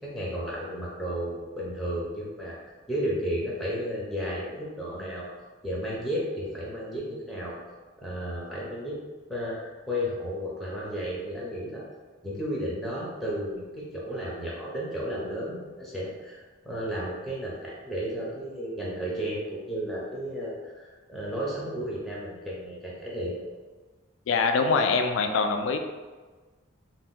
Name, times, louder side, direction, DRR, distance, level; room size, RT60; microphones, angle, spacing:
voice 1, 0.0-2.6 2.9-5.3 5.6-9.0 9.3-11.9 12.2-23.5, equal, ahead, -6 dB, 0.5 m, -33 dB
voice 2, 24.3-25.8, left 4 dB, 75° left, 6 dB, 0.3 m, -24 dB
2.5 x 2.1 x 3.6 m, 1.3 s
head